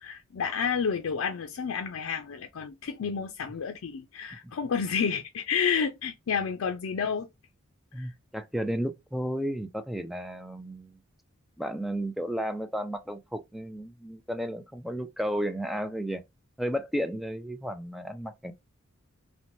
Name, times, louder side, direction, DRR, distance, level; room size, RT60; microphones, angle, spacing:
voice 1, 0.0-7.3 8.0-8.1, left 6 dB, 80° left, 0.4 m, -30 dB
voice 2, 7.9-11.0 11.6-16.2 16.6-18.5, equal, ahead, 0.3 m, -33 dB
3.0 x 2.1 x 2.6 m
head